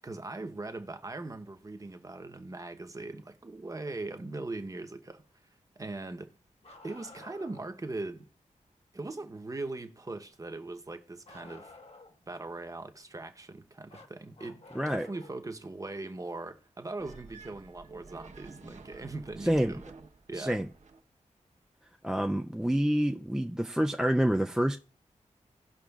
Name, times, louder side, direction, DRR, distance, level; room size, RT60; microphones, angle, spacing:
voice 1, 0.0-5.2 5.8-6.3 6.8-8.3 8.9-11.7 12.3-19.8 20.3-20.6, right 2 dB, 25° right, 0.8 m, -40 dB
Bark, 6.6-7.7 11.3-12.3 13.9-15.4 17.1-17.2 19.1-19.2 20.3-20.4, left 3 dB, 55° left, 1.2 m, -52 dB
voice 2, 14.8-15.1 19.4-19.8 20.4-20.7 22.0-24.8, equal, 5° right, 0.3 m, -27 dB
sound 1, 17.0-21.0, right 4 dB, 65° right, 1.0 m, -51 dB
18.0 x 6.0 x 2.3 m
wide cardioid pair, 125°, 13 cm